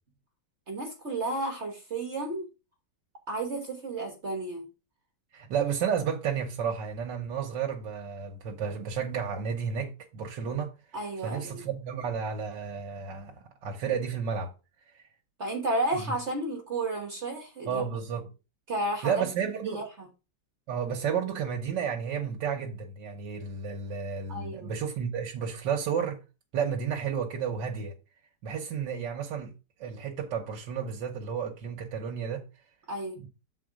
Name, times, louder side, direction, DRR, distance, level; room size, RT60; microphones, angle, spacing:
voice 1, 0.7-2.5 3.3-4.7 10.9-11.6 15.4-17.8 18.7-19.2 19.6-20.1 24.3-24.7 32.9-33.2, right 2 dB, 45° right, 1.4 m, -32 dB
voice 2, 5.3-10.7 11.2-14.5 14.9-15.0 17.7-18.2 19.0-19.9 20.7-26.2 26.5-27.9 28.4-29.5 29.8-32.4 33.2-33.3, right 7 dB, 90° right, 1.6 m, -32 dB
7.1 x 4.2 x 4.9 m
omnidirectional pair, 1.9 m